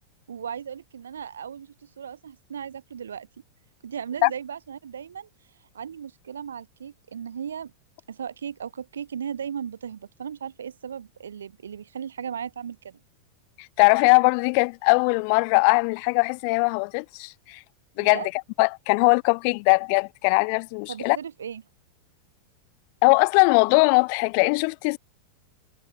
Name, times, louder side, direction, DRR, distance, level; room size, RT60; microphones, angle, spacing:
voice 1, 0.3-3.3 3.8-5.3 5.7-7.7 8.1-13.0 18.0-18.3 20.9-21.6, right 8 dB, 70° right, 7.7 m, -36 dB
voice 2, 13.8-17.6 18.0-18.3 18.6-21.2 23.0-25.0, left 40 dB or more, 45° left, 1.0 m, -20 dB
figure-of-eight pair, 90°, 0 cm